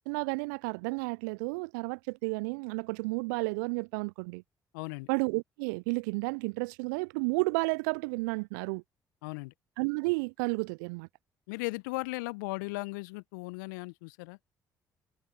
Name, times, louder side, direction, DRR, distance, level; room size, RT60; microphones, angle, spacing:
voice 1, 0.1-4.4 5.1-8.8 9.8-11.1, right 30 dB, 75° right, 0.4 m, -32 dB
voice 2, 4.7-5.1 9.2-9.5 11.5-14.4, left 25 dB, 75° left, 1.0 m, -37 dB
figure-of-eight pair, 45°, 10 cm